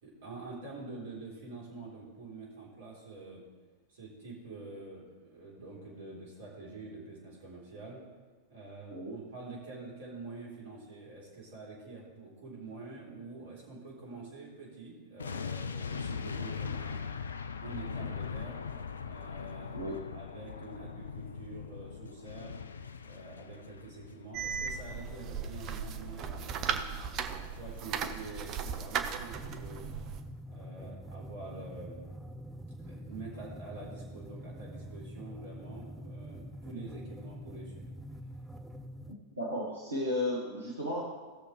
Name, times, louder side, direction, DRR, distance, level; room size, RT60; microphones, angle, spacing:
voice 1, 0.0-3.4 3.9-8.0 8.5-17.0 17.6-18.6 19.0-19.8 20.1-22.6 23.0-27.0 27.4-29.9 30.5-32.0 32.8-37.9, right 3 dB, 60° right, -4 dB, 3.4 m, -46 dB
sound 1, 15.2-28.3 28.6-28.8, left 6 dB, 70° left, 0.4 m, -41 dB
sound 2, 24.3-30.2, right 7 dB, 35° right, 0.7 m, -37 dB
sound 3, 29.3-39.1, equal, 5° right, 0.6 m, -45 dB
voice 2, 39.1-41.0, left 1 dB, 80° right, -5 dB, 1.6 m, -34 dB
17.0 x 6.7 x 3.2 m, 1.4 s
figure-of-eight pair, 90°, 0 cm